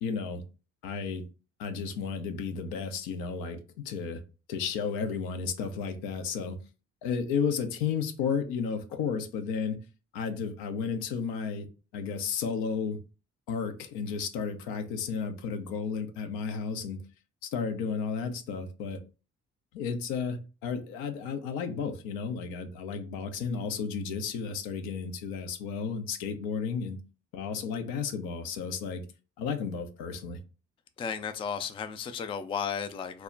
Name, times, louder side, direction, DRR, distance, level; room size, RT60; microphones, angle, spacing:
voice 1, 0.0-0.4 0.8-1.2 1.6-4.2 4.5-6.6 7.0-9.8 10.1-11.7 11.9-13.0 13.5-17.0 17.4-19.0 19.7-27.0 27.3-29.0 29.4-30.4, left 6 dB, 75° left, 0.6 m, -33 dB
voice 2, 31.0-33.2, left 7 dB, 15° left, 0.3 m, -34 dB
2.2 x 2.1 x 3.7 m
hypercardioid pair, 50°, 37 cm